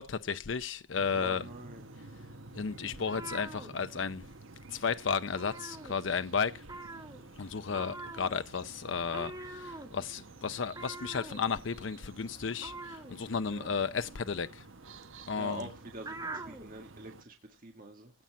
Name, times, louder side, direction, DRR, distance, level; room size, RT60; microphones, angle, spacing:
voice 1, 0.0-1.4 2.6-4.2 4.7-6.6 7.4-14.6 15.3-15.7, left 5 dB, 70° left, 0.6 m, -33 dB
sound 1, 0.9-17.2, right 2 dB, 85° right, 1.3 m, -51 dB
voice 2, 1.2-2.0 7.7-8.0 13.5-13.8 15.4-18.1, right 2 dB, 45° right, 1.9 m, -46 dB
sound 2, 2.9-4.4 4.7-4.9 5.2-6.3 6.6-16.7, right 2 dB, 20° right, 2.0 m, -45 dB
17.0 x 5.7 x 7.3 m
head